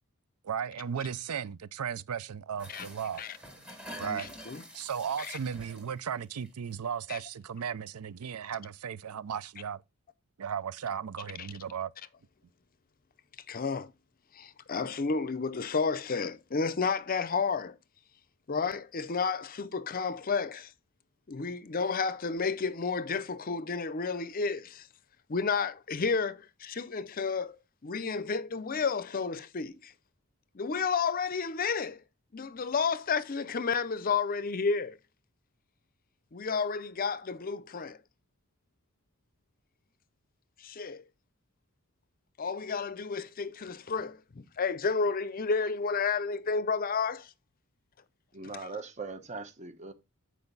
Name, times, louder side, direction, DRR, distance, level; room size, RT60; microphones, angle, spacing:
voice 1, 0.4-3.2 4.0-4.3 4.7-9.8 10.4-11.9, right 7 dB, 85° right, 0.5 m, -35 dB
sound 1, 2.6-6.2 6.4-6.7 7.1-7.2, equal, 5° right, 1.8 m, -47 dB
voice 2, 4.0-4.6 5.2-5.4 7.1-7.2 11.4-11.5 13.5-13.9 14.3-17.8 18.5-20.7 21.3-24.9 25.3-29.9 30.5-32.0 32.3-35.0 36.3-38.0 40.6-41.0 42.4-47.3, left 5 dB, 40° left, 0.6 m, -31 dB
voice 3, 48.3-49.9, right 3 dB, 30° right, 0.9 m, -40 dB
8.9 x 4.8 x 3.9 m
head